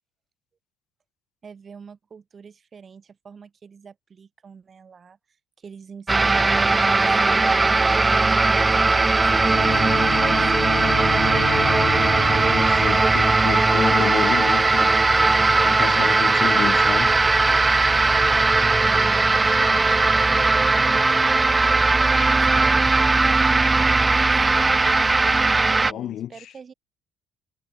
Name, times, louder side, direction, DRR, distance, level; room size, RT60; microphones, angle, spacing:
voice 1, 1.4-5.2 5.6-10.4 18.8-21.2 22.2-24.8 25.5-26.7, right 6 dB, 35° right, 2.4 m, -45 dB
sound 1, 6.1-25.9, right 3 dB, 20° right, 0.4 m, -18 dB
Bowed string instrument, 9.3-13.9, left 22 dB, 80° left, 1.5 m, -32 dB
voice 2, 12.5-15.0 15.6-17.2 25.9-26.5, left 11 dB, 60° left, 2.1 m, -30 dB
supercardioid pair, 85°, 0 cm